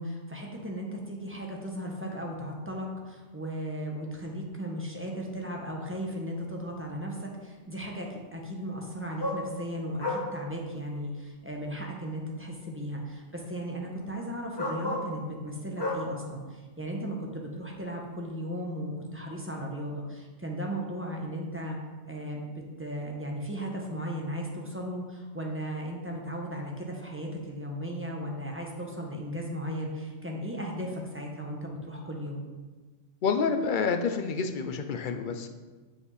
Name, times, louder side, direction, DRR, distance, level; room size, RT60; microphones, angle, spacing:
voice 1, 0.0-21.8 22.1-32.4, equal, 10° right, -1 dB, 1.0 m, -36 dB
sound 1, 6.4-6.5 9.2-9.5 10.0-10.3 11.5-11.6 13.3-13.5 14.6-15.1 15.8-16.0 18.2-18.3, left 2 dB, 20° left, 1.3 m, -32 dB
voice 2, 33.2-35.5, left 5 dB, 55° left, 7 dB, 0.6 m, -28 dB
7.8 x 5.3 x 4.9 m, 1.3 s
omnidirectional pair, 1.3 m